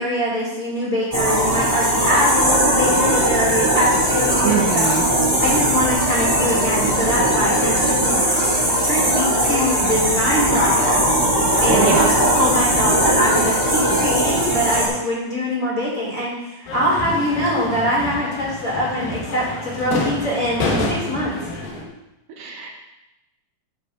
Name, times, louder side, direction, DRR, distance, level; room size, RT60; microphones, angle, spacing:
voice 1, 0.0-4.9 5.4-8.5 8.8-12.0 12.4-21.4, equal, 25° left, -6 dB, 2.8 m, -23 dB
sound 1, 1.1-14.9, right 1 dB, 5° right, 2.6 m, -19 dB
voice 2, 4.4-5.1 11.7-12.1 19.9-20.0 22.4-22.8, right 6 dB, 75° right, 1 dB, 2.3 m, -23 dB
sound 2, 16.7-21.8, left 2 dB, 75° left, 3.1 m, -28 dB
12.5 x 8.3 x 2.6 m, 0.94 s
omnidirectional pair, 4.1 m